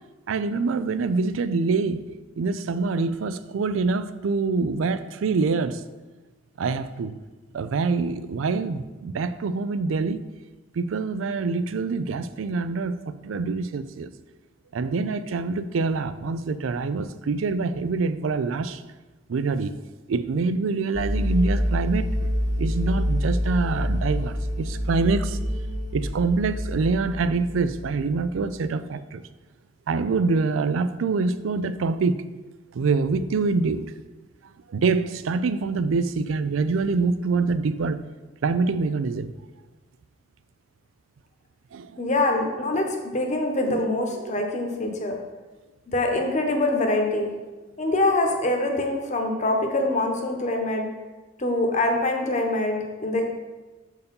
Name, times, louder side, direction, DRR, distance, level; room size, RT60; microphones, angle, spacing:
voice 1, 0.3-2.0 2.4-5.8 6.6-7.1 7.5-10.2 10.8-14.1 14.7-18.8 19.3-19.8 20.1-22.1 22.6-25.4 25.9-29.2 29.9-32.2 32.7-33.9 34.7-38.0 38.4-39.3 41.7-42.0 43.7-43.9 44.2-44.4 45.0-45.1, right 4 dB, 85° right, 0.4 m, -25 dB
sound 1, 20.9-28.3, equal, 60° left, 1.2 m, -27 dB
voice 2, 42.0-45.2 45.9-47.3 47.8-50.9 51.4-53.2, left 2 dB, 40° left, 1.0 m, -24 dB
6.6 x 4.6 x 5.3 m
head